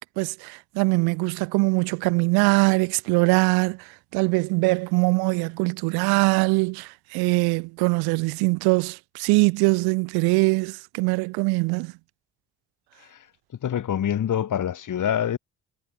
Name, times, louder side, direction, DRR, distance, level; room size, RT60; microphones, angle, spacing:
voice 1, 0.2-11.9, right 28 dB, 80° right, 0.7 m, -22 dB
voice 2, 13.6-15.4, left 9 dB, 55° left, 4.3 m, -26 dB
supercardioid pair, 70°, 37 cm